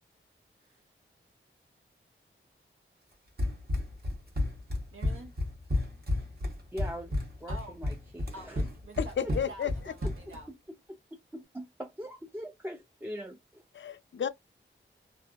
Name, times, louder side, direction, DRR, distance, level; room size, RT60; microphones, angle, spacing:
Run, 3.4-10.4, left 2 dB, 50° right, 1.1 m, -32 dB
voice 1, 4.9-5.4 7.5-7.8 8.3-10.5, right 2 dB, 90° right, 1.0 m, -47 dB
voice 2, 6.7-8.6 11.3-13.6, equal, 10° right, 0.4 m, -42 dB
voice 3, 9.0-9.7 13.7-14.3, left 8 dB, 65° left, 0.4 m, -32 dB
2.6 x 2.3 x 2.4 m
wide cardioid pair, 90°, 21 cm